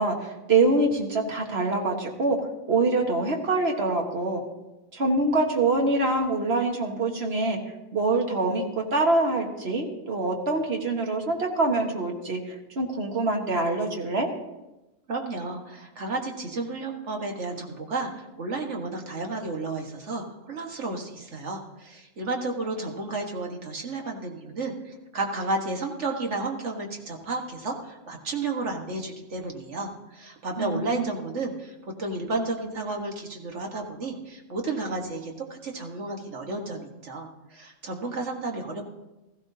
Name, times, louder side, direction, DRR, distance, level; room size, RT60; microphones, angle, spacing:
voice 1, 0.0-4.4 4.9-7.6 7.9-12.4 12.7-14.3 30.6-31.1, right 2 dB, 60° right, 1 dB, 1.7 m, -25 dB
voice 2, 15.1-38.9, right 3 dB, 75° right, 2 dB, 1.8 m, -32 dB
16.0 x 15.0 x 2.8 m, 1.0 s
omnidirectional pair, 1.2 m